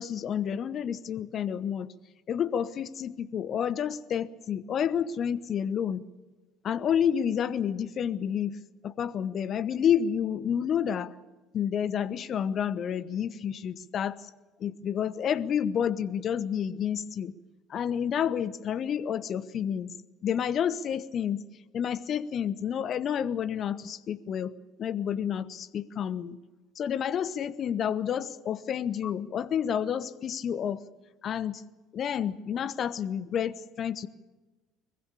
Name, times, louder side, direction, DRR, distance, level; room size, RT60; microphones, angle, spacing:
voice 1, 0.0-1.9 2.3-6.0 6.6-8.6 8.8-11.1 11.5-14.3 14.6-17.3 17.7-19.9 20.2-21.4 21.7-24.5 24.8-26.4 26.8-30.8 31.2-31.6 31.9-34.1, left 8 dB, 45° left, 18 dB, 1.0 m, -29 dB
23.0 x 21.5 x 7.1 m, 1.2 s
figure-of-eight pair, 60°, 0 cm